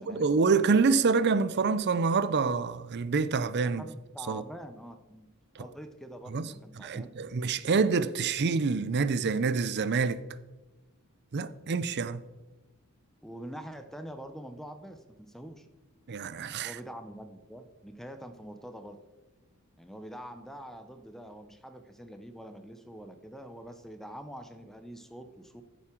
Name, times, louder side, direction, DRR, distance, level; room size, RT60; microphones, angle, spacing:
voice 1, 0.0-3.8 4.3-4.4 5.6-5.7 6.3-6.5 6.8-10.2 11.3-12.2 16.1-16.8, right 4 dB, 50° right, 0.5 m, -27 dB
voice 2, 3.6-5.3 5.6-7.1 13.2-15.7 16.6-19.0 19.8-25.6, equal, ahead, 0.7 m, -45 dB
14.0 x 7.2 x 4.5 m
head